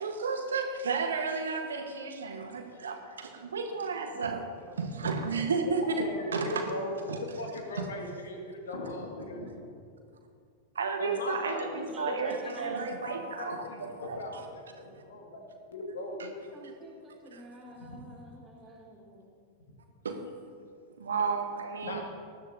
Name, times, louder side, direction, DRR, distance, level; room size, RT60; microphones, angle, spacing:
voice 1, 0.0-4.4 4.8-6.0 6.3-6.6 7.1-7.2 7.7-7.9 10.7-14.4 16.2-16.3 17.3-17.4 20.0-20.2 21.0-22.0, right 5 dB, 70° right, 5 dB, 1.2 m, -32 dB
voice 2, 6.0-9.7 11.0-16.4 17.7-18.2 21.8-22.0, left 2 dB, 65° left, 1 dB, 2.1 m, -39 dB
voice 3, 11.7-12.9 16.5-19.2 21.9-22.0, equal, 15° right, -6 dB, 3.5 m, -48 dB
19.5 x 12.5 x 2.8 m, 2.3 s
figure-of-eight pair, 90°, 0 cm